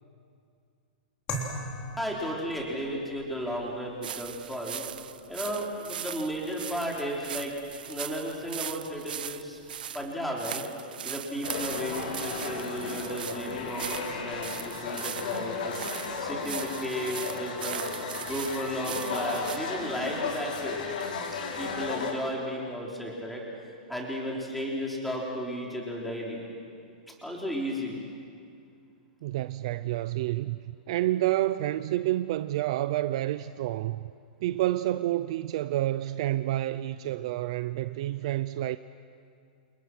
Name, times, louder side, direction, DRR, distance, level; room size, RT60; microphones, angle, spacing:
sound 1, 1.3-10.1, equal, 20° left, 3.4 m, -44 dB
voice 1, 2.0-4.8 5.3-7.5 7.8-9.6 9.9-10.6 11.0-15.7 16.2-17.8 18.2-20.8 21.6-23.4 23.9-26.4 27.2-28.0, equal, ahead, 3.8 m, -34 dB
sound 2, 4.0-19.6, right 9 dB, 85° right, 0.9 m, -39 dB
sound 3, 11.4-22.1, left 5 dB, 75° left, 6.4 m, -34 dB
voice 2, 29.2-34.1 34.4-38.8, right 14 dB, 40° right, 0.5 m, -29 dB
29.0 x 28.5 x 6.2 m
supercardioid pair, 175°, 5 cm